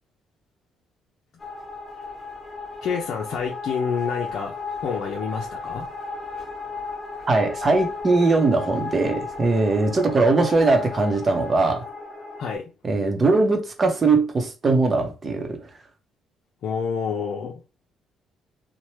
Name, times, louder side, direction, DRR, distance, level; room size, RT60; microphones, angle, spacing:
sound 1, 1.4-12.6, left 4 dB, 30° left, 1.0 m, -34 dB
voice 1, 2.8-5.9 12.4-12.7 16.6-17.6, left 6 dB, 65° left, 0.5 m, -28 dB
voice 2, 7.3-11.9 12.8-15.6, right 3 dB, 30° right, 0.7 m, -20 dB
2.8 x 2.1 x 3.1 m
cardioid pair, 110°, 0 cm